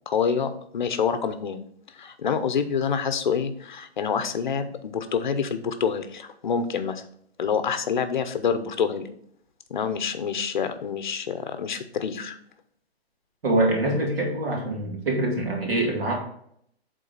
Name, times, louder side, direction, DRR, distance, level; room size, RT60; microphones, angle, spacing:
voice 1, 0.1-1.6 1.9-7.0 7.4-9.0 9.7-12.4, left 6 dB, 50° left, 9 dB, 0.7 m, -27 dB
voice 2, 13.4-16.1, right 1 dB, 65° right, -2 dB, 2.5 m, -24 dB
8.0 x 3.9 x 4.0 m, 0.68 s
hypercardioid pair, 170°, 32 cm